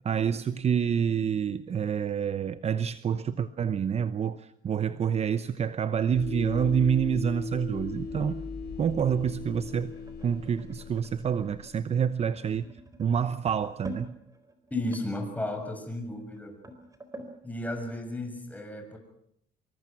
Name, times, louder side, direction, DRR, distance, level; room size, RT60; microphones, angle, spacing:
voice 1, 0.0-8.4 8.8-9.9 10.2-12.7 13.0-14.1, right 7 dB, 40° right, 0.9 m, -27 dB
sound 1, 6.1-12.0, left 5 dB, 65° left, 7.8 m, -38 dB
sound 2, 7.9-17.4, right 1 dB, 20° right, 4.3 m, -49 dB
voice 2, 14.7-16.6 17.4-19.0, left 1 dB, 10° left, 6.9 m, -34 dB
24.5 x 23.5 x 6.0 m
cardioid pair, 110°, 17 cm